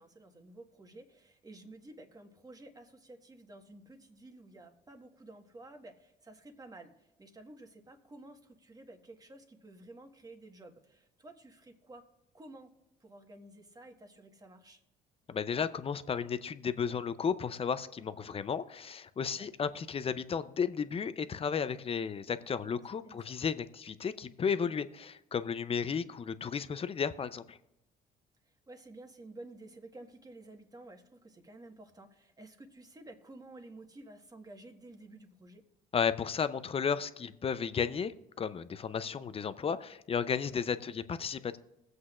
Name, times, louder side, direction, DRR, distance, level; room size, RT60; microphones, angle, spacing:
voice 1, 0.0-12.0 12.3-12.7 13.0-14.8 18.0-18.3 19.3-19.5 22.8-23.2 28.7-35.6 40.8-41.0, right 2 dB, 20° right, 1.5 m, -52 dB
voice 2, 15.3-27.6 35.9-38.1 38.4-41.6, left 6 dB, 35° left, 0.6 m, -33 dB
20.5 x 7.9 x 2.5 m
supercardioid pair, 80°, 18 cm